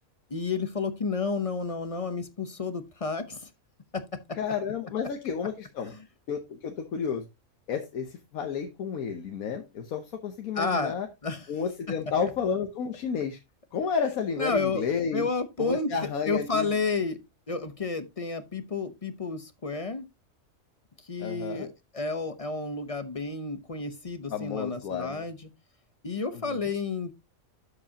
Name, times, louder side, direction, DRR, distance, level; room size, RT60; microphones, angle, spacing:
voice 1, 0.3-3.5 3.9-4.2 5.9-6.0 10.5-11.0 11.2-11.5 14.4-14.8 15.1-15.9 16.3-17.2 17.5-20.1 21.0-25.5 26.0-27.1, left 4 dB, 35° left, 0.7 m, -31 dB
voice 2, 4.4-5.9 6.3-7.2 7.7-11.1 11.5-13.4 13.7-15.3 15.6-16.8 21.2-21.7 24.3-25.3 26.5-26.6, left 6 dB, 90° left, 1.4 m, -31 dB
12.5 x 4.9 x 2.8 m
omnidirectional pair, 1.4 m